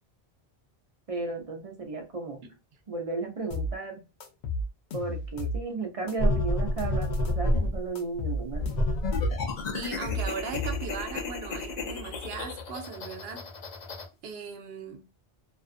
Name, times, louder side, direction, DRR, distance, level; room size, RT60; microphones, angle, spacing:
voice 1, 1.1-2.4 2.9-4.1 4.9-8.6, right 3 dB, 40° right, 0.6 m, -34 dB
sound 1, 3.5-3.8 4.2-5.6 6.1-7.5 8.0-9.4 9.8-11.0, left 1 dB, 90° left, 0.9 m, -33 dB
sound 2, 6.2-7.8 8.5-14.0, left 1 dB, 50° left, 0.6 m, -30 dB
voice 2, 9.7-13.4 14.2-15.0, right 5 dB, 75° right, 0.9 m, -38 dB
2.4 x 2.3 x 2.4 m
omnidirectional pair, 1.1 m